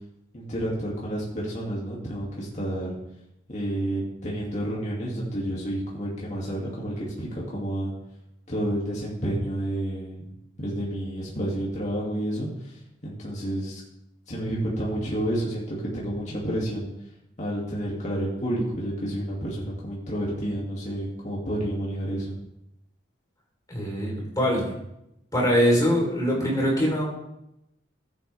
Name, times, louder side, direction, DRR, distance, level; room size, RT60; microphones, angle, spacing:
voice 1, 0.3-2.9 3.5-7.9 8.5-10.3 10.6-13.8 14.3-16.9 17.4-22.4, right 1 dB, 40° left, -5 dB, 2.4 m, -30 dB
voice 2, 23.7-24.7 25.3-27.0, equal, 20° left, -2 dB, 3.8 m, -23 dB
14.5 x 8.7 x 3.5 m, 0.84 s
head